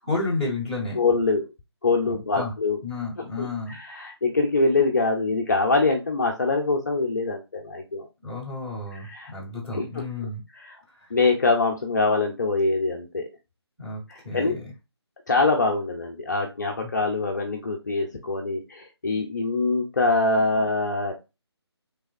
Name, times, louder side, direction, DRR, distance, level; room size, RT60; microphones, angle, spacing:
voice 1, 0.0-1.0 2.0-2.5 2.8-3.8 8.2-10.4 10.9-11.1 13.8-14.7, left 3 dB, ahead, -12 dB, 1.3 m, -31 dB
voice 2, 1.0-1.5 1.8-2.8 3.4-8.1 8.9-9.3 9.7-10.0 10.6-10.8 11.1-13.2 14.1-14.6 15.3-21.1, left 3 dB, 40° left, 2 dB, 0.6 m, -24 dB
3.5 x 3.3 x 2.5 m, 0.26 s
figure-of-eight pair, 155°, 14 cm